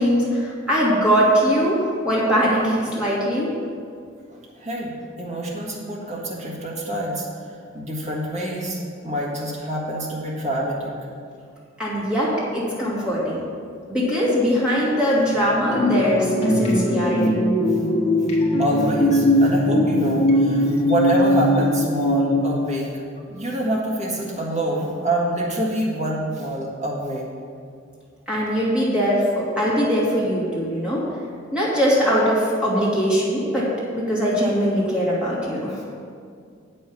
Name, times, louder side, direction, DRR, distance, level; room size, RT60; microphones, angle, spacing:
voice 1, 0.0-3.5 11.8-13.4 13.9-17.4 28.3-31.0 31.5-33.7 33.9-35.8, equal, 5° right, -8 dB, 2.6 m, -21 dB
voice 2, 4.3-7.3 7.7-10.9 18.6-22.9 23.3-27.3, right 1 dB, 35° right, -4 dB, 1.7 m, -26 dB
sound 1, 15.7-22.8, left 1 dB, 35° left, 1.3 m, -20 dB
8.4 x 5.6 x 7.3 m, 2.2 s
head